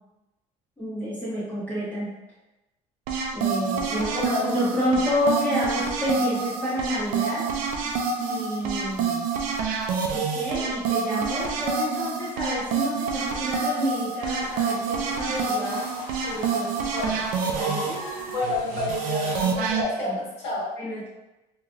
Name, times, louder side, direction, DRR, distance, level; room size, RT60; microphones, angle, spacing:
voice 1, 0.8-2.1 3.3-7.5 8.2-9.3 10.1-15.9 16.2-17.1 17.5-18.0 20.1-20.2 20.8-21.1, equal, 10° left, -10 dB, 0.7 m, -29 dB
sound 1, 3.1-19.8, right 5 dB, 70° right, 0.4 m, -27 dB
voice 2, 3.8-4.6 16.9-17.2 18.3-20.7, left 2 dB, 50° left, -6 dB, 1.2 m, -30 dB
sound 2, 14.2-19.5, left 3 dB, 65° left, 0.7 m, -41 dB
3.1 x 2.5 x 2.3 m, 0.99 s
cardioid pair, 150°, 14 cm